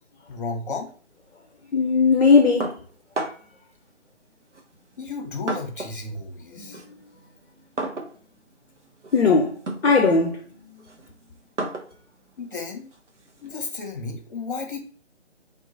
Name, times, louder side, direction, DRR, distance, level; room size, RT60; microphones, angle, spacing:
voice 1, 0.3-0.9 5.0-6.8 12.4-12.9 13.4-14.8, left 4 dB, 45° left, 1.0 m, -33 dB
voice 2, 1.7-2.8 6.6-6.7 9.1-10.4, left 4 dB, 60° left, 0.6 m, -18 dB
sound 1, 2.6-3.6 4.5-6.1 6.4-13.7, right 2 dB, 75° right, 1.0 m, -35 dB
3.5 x 2.9 x 2.6 m
figure-of-eight pair, 150°, 36 cm